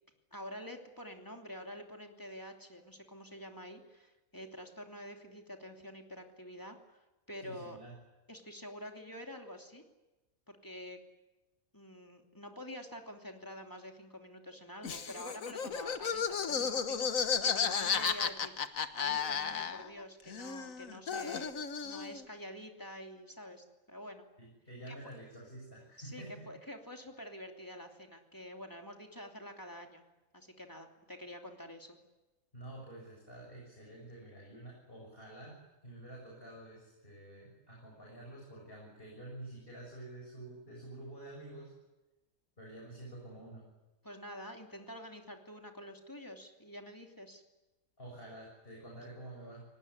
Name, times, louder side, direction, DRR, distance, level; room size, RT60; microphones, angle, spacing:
voice 1, 0.3-7.0 7.3-7.8 8.3-9.8 10.5-11.0 11.7-21.6 21.8-24.2 24.9-25.0 26.0-30.0 30.3-32.0 44.0-47.4, equal, 15° left, 3 dB, 2.8 m, -47 dB
voice 2, 7.4-7.9 24.4-26.5 32.5-35.6 35.8-41.7 42.6-43.7 48.0-49.7, right 1 dB, 40° left, -2 dB, 7.6 m, -49 dB
Laughter, 14.8-20.0 20.3-22.2, left 6 dB, 70° left, 1.6 m, -34 dB
28.5 x 18.5 x 10.0 m, 1.1 s
omnidirectional pair, 1.5 m